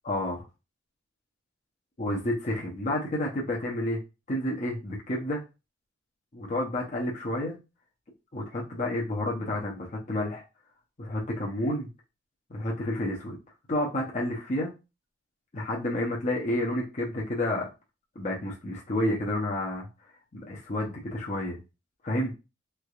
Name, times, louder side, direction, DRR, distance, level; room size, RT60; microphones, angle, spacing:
voice 1, 0.1-0.5 2.0-4.0 4.3-5.4 6.3-7.6 8.3-10.4 11.0-11.9 12.5-13.4 13.7-14.7 15.5-17.7 18.2-19.9 20.3-21.6 22.0-22.3, left 1 dB, 40° left, -2 dB, 0.7 m, -30 dB
3.2 x 3.1 x 2.4 m, 0.28 s
head